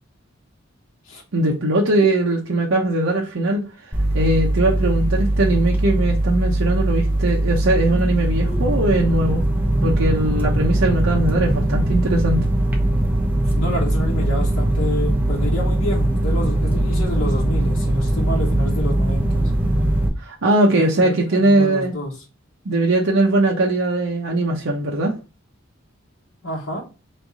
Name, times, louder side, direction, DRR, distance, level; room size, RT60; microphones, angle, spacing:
voice 1, 1.3-3.6 4.1-9.4 9.8-12.5 20.2-21.9 22.6-25.2, right 2 dB, 70° right, -1 dB, 0.8 m, -20 dB
sound 1, 3.9-20.1, right 1 dB, 10° right, 0.9 m, -20 dB
voice 2, 13.6-19.5 20.7-22.2 26.4-26.8, left 1 dB, 85° left, -3 dB, 1.1 m, -28 dB
3.5 x 3.3 x 4.0 m, 0.30 s
head